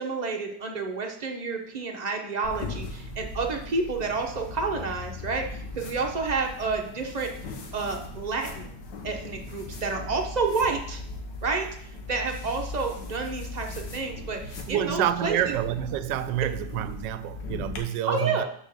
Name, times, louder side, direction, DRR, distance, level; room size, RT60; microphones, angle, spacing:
voice 1, 0.0-7.3 7.7-8.7 9.0-11.0 11.4-15.5 18.1-18.4, right 4 dB, 30° right, 0.9 m, -30 dB
sound 1, 2.4-17.8, left 2 dB, 85° left, 1.8 m, -39 dB
voice 2, 14.7-18.4, right 11 dB, 85° right, 1.2 m, -28 dB
6.4 x 5.0 x 6.6 m
omnidirectional pair, 1.9 m